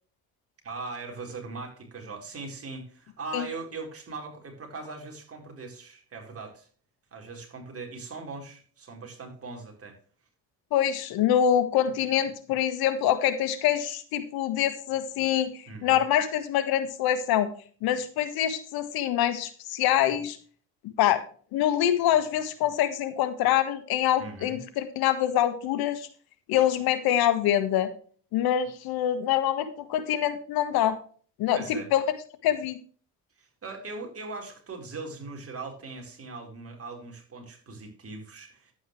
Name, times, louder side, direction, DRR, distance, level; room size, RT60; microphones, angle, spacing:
voice 1, 0.6-6.7 7.1-10.0 15.7-16.0 24.2-24.6 31.5-31.9 33.4-38.7, right 3 dB, 40° right, 2 dB, 4.3 m, -40 dB
voice 2, 10.7-15.5 15.8-17.5 17.8-20.4 21.0-21.2 21.5-26.1 26.5-27.9 28.3-31.0 31.4-32.0 32.4-32.8, left 11 dB, 80° left, 10 dB, 1.6 m, -25 dB
11.0 x 9.1 x 3.2 m, 0.42 s
cardioid pair, 90°, 36 cm